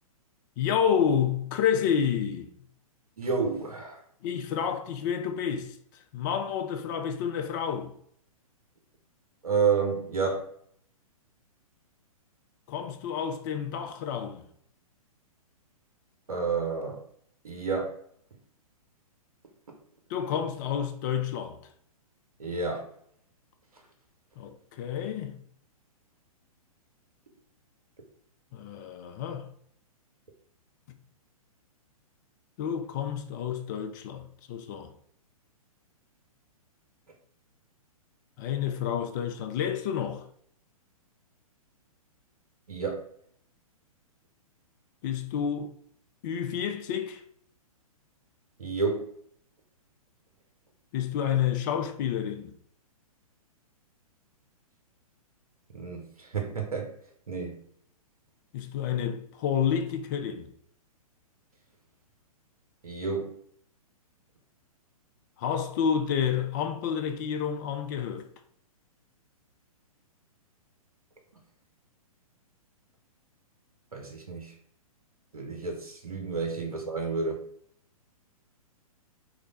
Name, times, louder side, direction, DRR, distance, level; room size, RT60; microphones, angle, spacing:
voice 1, 0.6-2.5 4.2-5.8 6.1-7.9 12.7-14.5 20.1-21.6 24.4-25.4 28.5-29.5 30.9-31.0 32.6-34.9 38.4-40.3 45.0-45.7 46.2-47.2 50.9-52.5 58.5-60.5 65.4-68.3, left 8 dB, 30° left, 0.4 m, -29 dB
voice 2, 3.2-4.0 9.4-10.4 16.3-17.0 17.4-18.0 22.4-22.8 42.7-43.0 48.6-49.1 55.7-56.9 57.3-57.6 62.8-63.3 73.9-74.5 75.3-77.4, right 5 dB, 75° right, 0.8 m, -30 dB
3.1 x 2.2 x 4.0 m
figure-of-eight pair, 115°, 19 cm